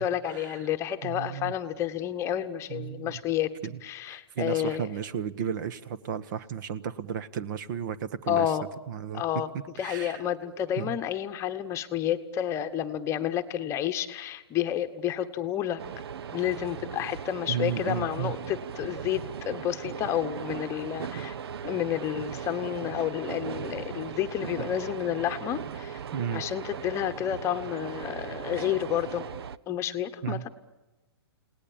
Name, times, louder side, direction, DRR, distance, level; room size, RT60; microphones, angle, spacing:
voice 1, 0.0-3.5 3.8-4.9 8.3-8.7 9.1-9.5 9.8-15.8 16.3-21.3 21.6-26.0 26.3-29.3 29.7-30.5, left 11 dB, 20° left, 8 dB, 1.1 m, -30 dB
voice 2, 1.0-1.5 2.7-3.1 3.6-3.7 4.1-8.5 8.9-9.2 9.8-10.2 10.8-11.0 17.5-18.3 26.1-26.4 30.2-30.4, right 8 dB, 50° right, 15 dB, 1.3 m, -33 dB
sound 1, 15.8-29.6, right 7 dB, 70° right, 0.8 m, -38 dB
29.5 x 18.5 x 8.7 m, 1.1 s
hypercardioid pair, 150°, 14 cm